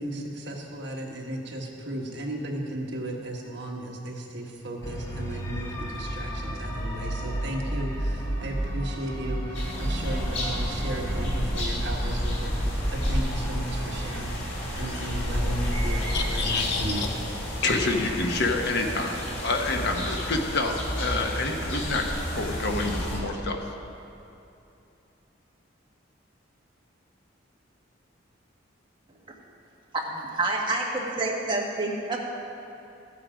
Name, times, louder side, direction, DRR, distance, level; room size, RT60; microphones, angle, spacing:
voice 1, 0.0-14.4 14.8-17.0, right 1 dB, 60° right, 0 dB, 1.4 m, -35 dB
sound 1, 4.8-15.8, right 1 dB, 15° left, 1.3 m, -33 dB
sound 2, 9.5-23.2, equal, 90° left, 2.9 m, -30 dB
voice 2, 16.1-17.1 17.5-23.6, left 3 dB, 60° left, 3 dB, 1.1 m, -28 dB
voice 3, 29.9-32.3, right 2 dB, 25° right, -2 dB, 1.5 m, -28 dB
14.5 x 8.3 x 5.0 m, 2.8 s
head